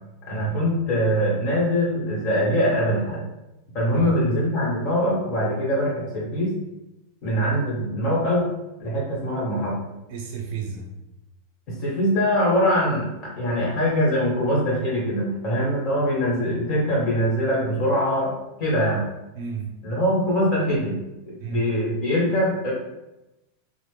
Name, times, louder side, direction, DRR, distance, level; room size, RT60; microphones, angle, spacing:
voice 1, 0.3-3.2 3.7-6.5 7.2-8.5 8.8-9.8 11.7-18.3 18.6-19.0 19.8-21.0 21.3-22.7, equal, 40° left, -5 dB, 1.4 m, -23 dB
voice 2, 10.1-10.9 19.3-19.8 21.4-21.7, right 7 dB, 55° right, 1 dB, 0.6 m, -32 dB
2.9 x 2.1 x 3.3 m, 0.96 s
supercardioid pair, 155°, 0 cm